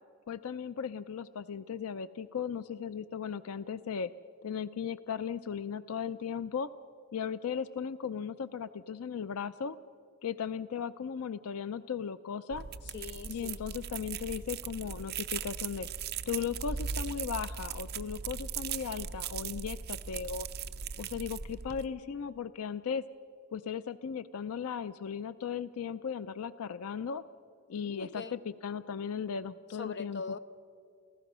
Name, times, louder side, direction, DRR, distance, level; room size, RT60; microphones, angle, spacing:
voice 1, 0.3-4.1 4.4-6.7 7.1-9.8 10.2-12.7 13.3-15.9 16.3-20.5 21.0-23.1 23.5-27.2 27.7-30.2, left 7 dB, 80° left, 14 dB, 0.4 m, -37 dB
sound 1, 12.5-21.9, right 7 dB, 45° right, 0.6 m, -39 dB
voice 2, 12.9-13.7 27.8-28.3 29.8-30.4, left 4 dB, 50° left, 12 dB, 0.7 m, -41 dB
28.5 x 15.5 x 6.1 m, 2.3 s
head